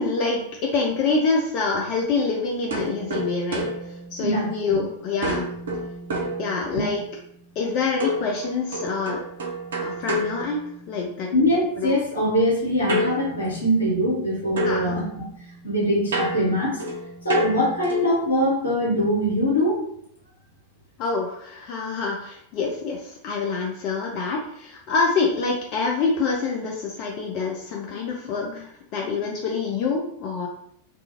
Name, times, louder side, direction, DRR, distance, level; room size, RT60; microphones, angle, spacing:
voice 1, 0.0-5.5 6.4-7.0 7.6-9.2 9.8-10.6 10.9-11.3 11.8-12.0 14.6-15.0 21.0-30.5, left 4 dB, 40° left, -1 dB, 0.4 m, -26 dB
sound 1, 2.7-4.8 5.2-7.1 8.0-11.2 12.9-14.3 14.6-18.2, equal, 65° right, 0.5 m, -30 dB
voice 2, 4.2-4.8 6.7-6.9 11.3-15.0 15.6-16.8 17.2-19.8, equal, 80° left, -4 dB, 1.0 m, -22 dB
2.4 x 2.3 x 2.9 m, 0.70 s
figure-of-eight pair, 90°, 0 cm